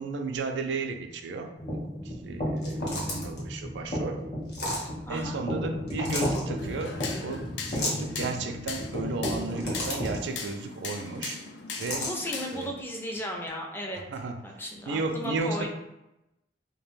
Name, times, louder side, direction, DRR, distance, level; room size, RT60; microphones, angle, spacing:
voice 1, 0.0-4.2 5.1-11.4 11.8-12.1 12.5-12.7 14.1-14.5 14.9-15.7, right 3 dB, 85° right, 6 dB, 0.4 m, -34 dB
sound 1, 1.6-10.2, equal, 40° left, 0.8 m, -34 dB
sound 2, 2.6-3.4 4.5-4.9 5.9-6.4 7.7-8.1 9.3-10.2 11.7-12.1, left 1 dB, 65° left, 0.8 m, -33 dB
voice 2, 5.1-5.4 12.0-14.0 14.4-15.7, equal, 15° left, 0 dB, 0.4 m, -35 dB
sound 3, 6.6-12.7, left 4 dB, 85° left, 0.4 m, -39 dB
2.3 x 2.2 x 3.0 m, 0.91 s
head